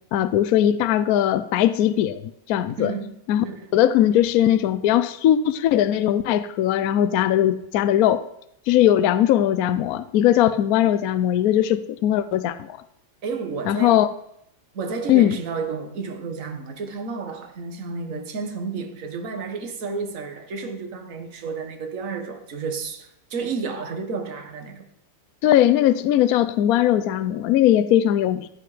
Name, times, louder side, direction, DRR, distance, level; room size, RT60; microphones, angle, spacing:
voice 1, 0.1-2.9 3.3-3.4 3.7-8.2 8.7-12.8 13.7-14.1 15.1-15.4 25.4-28.5, left 11 dB, 75° left, 0.8 m, -19 dB
voice 2, 2.8-3.1 3.4-3.7 13.2-14.1 14.7-24.9, right 4 dB, 45° right, 1.7 m, -31 dB
16.0 x 9.6 x 5.0 m
omnidirectional pair, 2.2 m